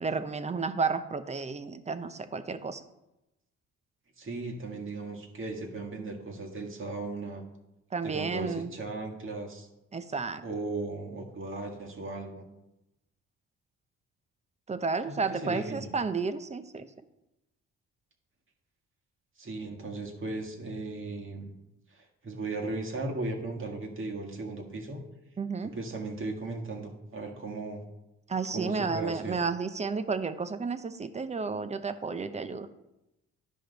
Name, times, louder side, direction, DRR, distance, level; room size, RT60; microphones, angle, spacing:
voice 1, 0.0-2.8 7.9-8.7 9.9-10.4 14.7-16.9 25.4-25.7 28.3-32.7, right 4 dB, 25° right, 11 dB, 0.6 m, -32 dB
voice 2, 4.2-7.4 8.0-9.7 10.4-12.5 15.1-15.9 19.4-21.5 21.9-25.0 25.6-27.8 28.5-29.4, right 2 dB, 40° right, 1 dB, 1.6 m, -37 dB
11.0 x 5.0 x 3.9 m, 0.93 s
cardioid pair, 90°, 30 cm